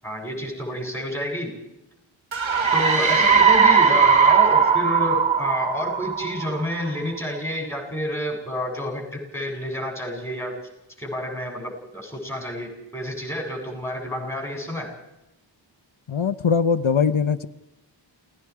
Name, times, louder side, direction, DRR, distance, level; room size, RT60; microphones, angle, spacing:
voice 1, 0.0-1.5 2.7-10.6 11.0-14.9, equal, 5° left, 1 dB, 7.3 m, -29 dB
sound 1, 2.3-6.9, right 5 dB, 85° right, 1.3 m, -18 dB
voice 2, 16.1-17.5, left 6 dB, 90° left, 14 dB, 0.9 m, -21 dB
28.5 x 19.0 x 4.8 m, 0.93 s
wide cardioid pair, 45°, 46 cm